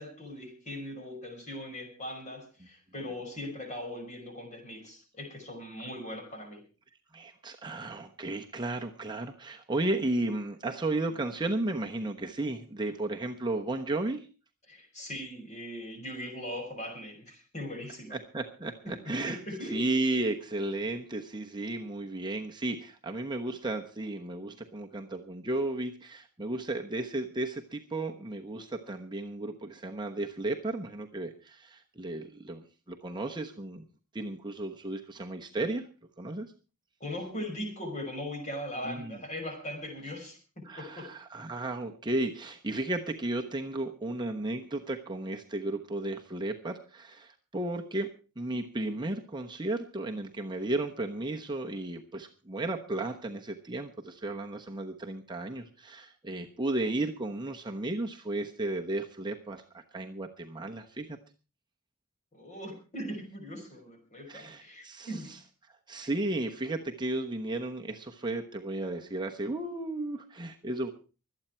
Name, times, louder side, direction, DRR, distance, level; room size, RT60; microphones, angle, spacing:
voice 1, 0.0-6.6 14.7-18.2 18.9-19.9 37.0-41.1 62.3-65.3, left 1 dB, 30° left, 3 dB, 5.6 m, -40 dB
voice 2, 7.1-14.3 18.1-33.8 34.1-35.9 36.2-36.5 38.8-39.2 40.6-48.1 48.4-61.2 64.3-65.4 65.9-70.9, right 2 dB, 20° right, 2 dB, 1.1 m, -34 dB
24.5 x 8.9 x 4.5 m, 0.34 s
head